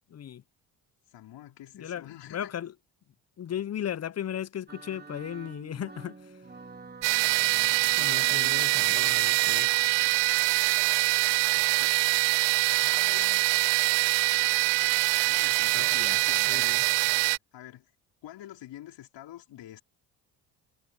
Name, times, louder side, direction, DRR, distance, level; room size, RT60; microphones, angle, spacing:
voice 1, 0.1-0.4 1.7-2.7 3.4-6.5 7.2-7.3 8.0-9.8 15.7-16.2 16.5-16.9, left 10 dB, 35° left, 0.6 m, -36 dB
voice 2, 1.1-2.5 7.2-8.7 11.5-12.0 12.7-13.4 15.2-17.1 17.5-17.9 18.2-19.8, left 13 dB, 70° left, 4.6 m, -48 dB
sound 1, 4.7-10.4, right 4 dB, 20° right, 4.3 m, -48 dB
sound 2, 7.0-17.4, right 24 dB, 70° right, 0.5 m, -24 dB
supercardioid pair, 70°, 45 cm